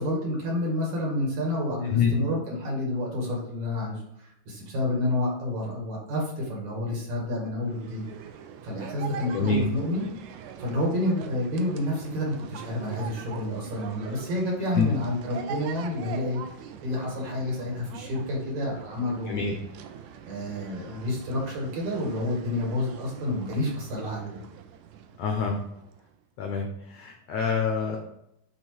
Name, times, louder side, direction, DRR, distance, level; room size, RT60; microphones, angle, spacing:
voice 1, 0.0-8.0 8.6-10.0 10.6-19.5 20.3-24.4, left 1 dB, 55° right, -3 dB, 2.9 m, -29 dB
voice 2, 1.8-2.1 9.3-9.6 14.7-14.9 19.3-19.5 25.2-25.6 26.4-28.0, left 5 dB, 90° left, 2 dB, 1.5 m, -26 dB
sound 1, 7.6-26.1, right 8 dB, 85° right, 1.7 m, -43 dB
8.4 x 3.1 x 4.6 m, 0.79 s
omnidirectional pair, 4.1 m